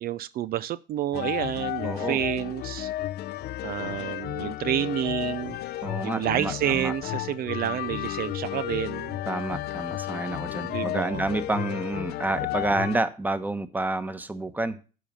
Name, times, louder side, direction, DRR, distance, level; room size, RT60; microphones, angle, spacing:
voice 1, 0.0-2.9 3.6-5.6 6.0-9.2 10.6-11.2, right 12 dB, 60° right, 0.5 m, -29 dB
sound 1, 1.1-13.0, left 14 dB, 70° left, 0.6 m, -33 dB
voice 2, 1.8-2.2 5.8-6.9 9.3-14.8, right 2 dB, 10° right, 1.1 m, -29 dB
11.0 x 5.0 x 7.4 m
cardioid pair, 110°, 17 cm